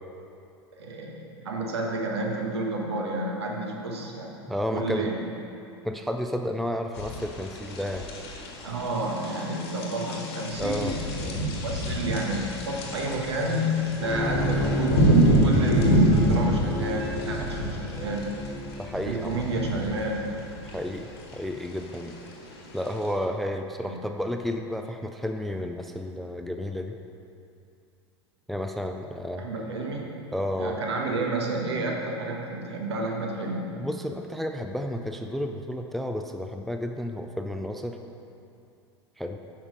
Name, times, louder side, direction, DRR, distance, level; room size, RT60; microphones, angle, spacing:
voice 1, 0.7-4.4 4.7-5.1 8.6-18.3 19.0-20.3 23.8-24.0 29.4-30.1 30.6-33.8, right 2 dB, 65° right, 0 dB, 1.5 m, -30 dB
voice 2, 4.5-5.1 5.8-8.1 10.6-11.0 18.8-19.4 20.6-22.2 22.7-27.0 28.5-29.5 30.3-30.8 33.8-38.0 39.2-39.4, left 1 dB, ahead, 5 dB, 0.3 m, -31 dB
sound 1, 7.0-23.1, right 1 dB, 60° left, 1.6 m, -27 dB
Bowed string instrument, 14.0-19.1, left 1 dB, 40° left, 1.4 m, -30 dB
9.3 x 5.9 x 5.2 m, 2.6 s
figure-of-eight pair, 85°, 15 cm